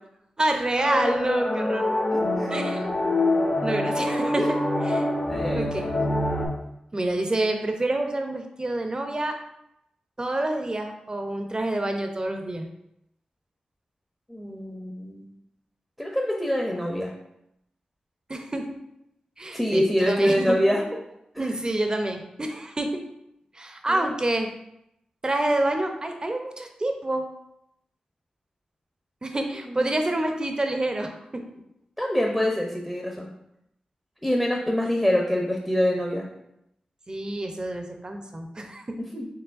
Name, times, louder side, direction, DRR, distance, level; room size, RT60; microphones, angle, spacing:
voice 1, 0.4-1.8 2.5-2.9 3.6-4.4 4.8-5.0 5.5-5.9 6.9-9.4 10.2-12.7 18.3-18.7 19.4-20.5 21.4-23.0 23.5-24.5 25.2-27.3 29.2-31.6 37.1-38.8, right 1 dB, 30° right, 4 dB, 0.6 m, -27 dB
sound 1, 0.8-6.5, left 1 dB, 45° left, 1.0 m, -25 dB
voice 2, 2.1-2.5 4.3-4.5 5.3-5.8 14.3-15.3 16.0-17.1 19.5-20.8 21.4-21.5 23.9-24.0 29.7-30.0 32.0-33.3 34.2-36.3 39.0-39.3, equal, 5° left, 0 dB, 0.7 m, -25 dB
4.7 x 3.3 x 2.5 m, 0.81 s
cardioid pair, 50°, 3 cm